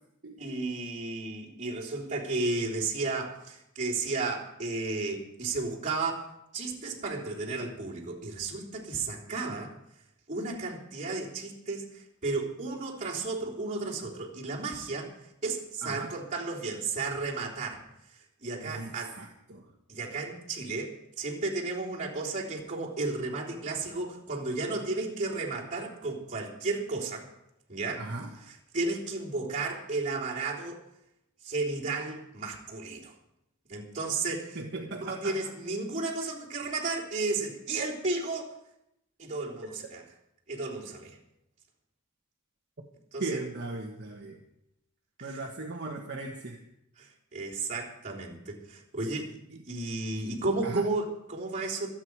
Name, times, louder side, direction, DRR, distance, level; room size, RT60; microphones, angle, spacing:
voice 1, 0.4-9.7 10.3-15.1 15.4-17.8 18.4-19.2 19.9-27.3 27.7-28.0 28.5-30.8 31.4-33.1 33.7-34.6 35.0-38.5 39.2-40.0 40.5-41.2 43.1-43.4 45.2-45.4 47.0-49.3 49.7-51.9, right 3 dB, 35° right, -4 dB, 3.6 m, -33 dB
voice 2, 15.8-16.1 18.6-19.7 28.0-28.3 34.5-35.4 43.2-44.4 45.2-46.6 49.5-49.6 50.6-50.9, right 2 dB, 50° right, 0 dB, 1.5 m, -37 dB
26.0 x 9.0 x 4.8 m, 0.82 s
head